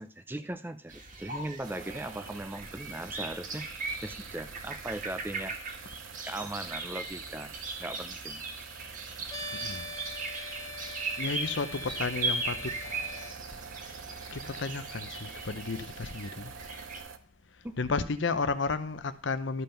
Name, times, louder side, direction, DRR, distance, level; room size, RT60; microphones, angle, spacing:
voice 1, 0.0-3.7 4.0-5.5 6.2-7.5 7.8-8.5 17.6-17.8, right 1 dB, 10° right, 0.6 m, -39 dB
sound 1, 0.9-17.0, right 3 dB, 45° right, 1.8 m, -39 dB
sound 2, 1.6-17.2, right 6 dB, 90° right, 0.9 m, -47 dB
sound 3, 9.3-13.3, left 1 dB, 20° left, 1.2 m, -42 dB
voice 2, 9.6-9.9 10.3-10.4 11.2-12.7 14.3-16.5 17.8-19.6, left 4 dB, 70° left, 0.8 m, -32 dB
12.5 x 5.5 x 5.8 m
head